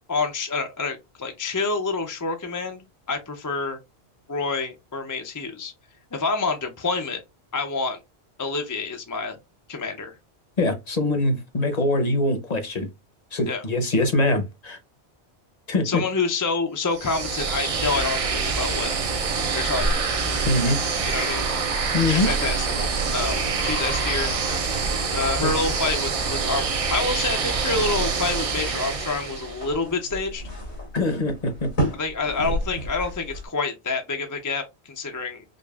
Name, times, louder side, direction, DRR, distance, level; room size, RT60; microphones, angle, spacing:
voice 1, 0.1-3.8 4.3-5.7 6.1-7.2 7.5-8.0 8.4-9.4 9.7-10.1 13.5-13.6 15.8-18.9 19.5-20.0 21.1-21.4 22.1-22.6 23.1-24.3 25.1-30.4 32.0-35.4, left 4 dB, 25° left, 0.4 m, -27 dB
voice 2, 10.6-12.9 13.3-14.8 15.7-16.0 20.5-20.8 21.9-22.3 25.4-25.5 30.9-31.7, left 2 dB, 40° left, 0.8 m, -23 dB
sound 1, 16.9-29.7, right 5 dB, 40° right, 0.5 m, -26 dB
sound 2, 21.4-33.5, equal, 85° left, 1.9 m, -35 dB
5.1 x 2.4 x 2.3 m
omnidirectional pair, 1.1 m